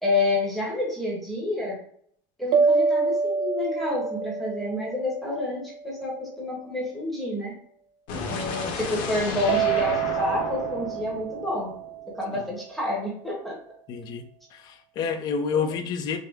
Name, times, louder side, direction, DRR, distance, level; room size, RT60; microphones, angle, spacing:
voice 1, 0.0-1.8 2.4-7.5 8.3-11.7 12.2-13.5 15.5-15.7, left 2 dB, ahead, 1.0 m, -29 dB
sound 1, 2.5-6.0 9.5-12.5, right 5 dB, 60° right, 0.6 m, -27 dB
sound 2, 8.1-12.1, left 4 dB, 60° left, 0.9 m, -33 dB
voice 2, 13.9-16.2, left 6 dB, 40° left, 0.5 m, -29 dB
5.0 x 2.1 x 3.4 m
cardioid pair, 160°, 11 cm